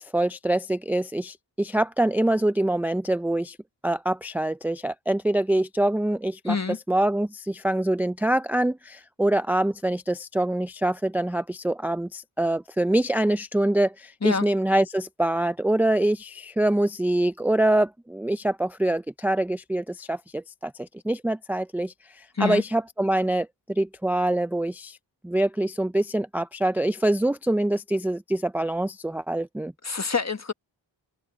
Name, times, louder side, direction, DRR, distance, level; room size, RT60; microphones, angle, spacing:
voice 1, 0.0-3.6 3.8-6.6 6.9-25.0 25.2-29.7, right 1 dB, 5° right, 0.4 m, -25 dB
voice 2, 6.4-6.8 14.2-14.5 22.3-22.6 29.8-30.5, left 5 dB, 35° left, 1.5 m, -26 dB
wide cardioid pair, 60°, 46 cm